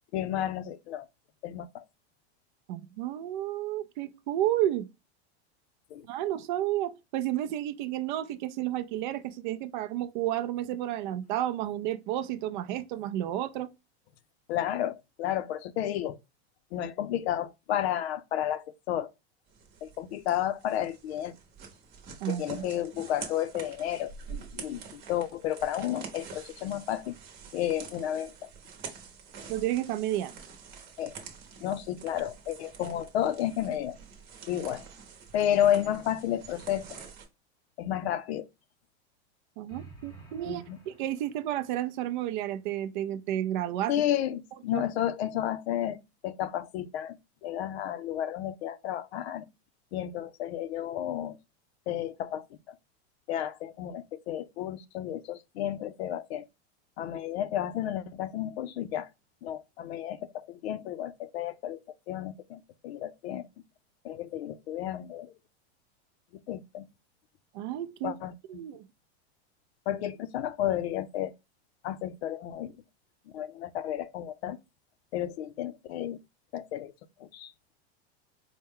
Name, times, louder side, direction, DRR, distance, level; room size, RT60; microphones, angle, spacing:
voice 1, 0.1-1.1 1.4-1.8 5.9-6.1 14.5-16.2 16.7-19.1 19.8-21.4 22.3-27.2 27.5-28.5 31.0-31.1 31.6-34.0 34.5-34.8 35.3-36.9 37.8-38.5 40.4-40.8 43.9-46.0 46.2-47.2 47.4-49.4 49.9-51.4 51.9-52.8 53.3-56.5 57.0-59.1 59.4-61.8 62.1-63.4 64.0-65.3 66.5-66.8 68.0-68.3 69.9-71.3 71.8-72.8 73.3-74.6 75.1-76.2 76.5-76.9 77.2-77.5, left 11 dB, 70° left, 0.6 m, -32 dB
voice 2, 2.7-4.9 6.1-13.7 22.2-22.6 29.5-30.3 39.6-43.9 44.7-44.8 67.5-68.1 68.5-68.8, right 13 dB, 45° right, 0.4 m, -31 dB
sound 1, 19.5-37.3, right 6 dB, 30° right, 0.9 m, -47 dB
sound 2, 39.7-41.7, right 4 dB, 10° left, 0.5 m, -51 dB
4.4 x 2.1 x 3.5 m
supercardioid pair, 160°, 33 cm